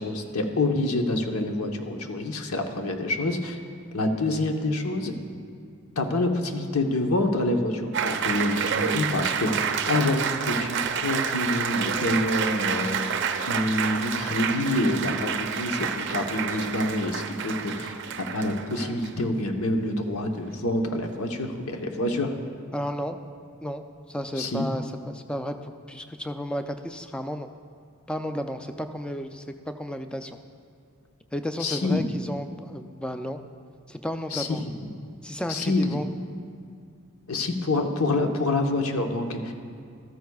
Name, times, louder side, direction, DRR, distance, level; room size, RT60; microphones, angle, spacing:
voice 1, 0.0-3.6 3.9-5.1 6.0-13.1 13.5-18.0 18.3-22.3 24.4-24.7 31.6-32.0 34.3-34.6 35.5-35.9 37.3-39.5, left 2 dB, 90° left, 4 dB, 1.0 m, -27 dB
Applause, 7.9-19.3, right 7 dB, 55° right, 0.5 m, -29 dB
voice 2, 22.7-23.2 23.6-27.5 28.1-30.4 31.3-33.4 33.9-34.6 35.2-36.1, equal, 5° left, 7 dB, 0.4 m, -33 dB
14.0 x 13.5 x 2.4 m, 2.3 s
head